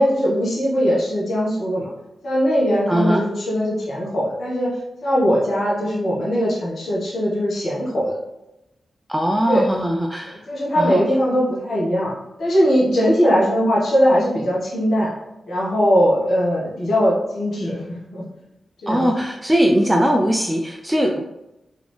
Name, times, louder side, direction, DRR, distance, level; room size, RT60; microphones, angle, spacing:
voice 1, 0.0-1.9 2.2-4.7 5.0-8.1 9.5-9.6 10.3-12.1 12.4-15.1 15.5-18.2 18.8-19.1, equal, 65° left, -6 dB, 1.5 m, -20 dB
voice 2, 2.9-3.3 9.1-10.4 10.8-11.0 18.9-21.2, equal, 15° right, 2 dB, 0.5 m, -20 dB
3.6 x 3.4 x 3.3 m, 0.95 s
supercardioid pair, 40°, 0 cm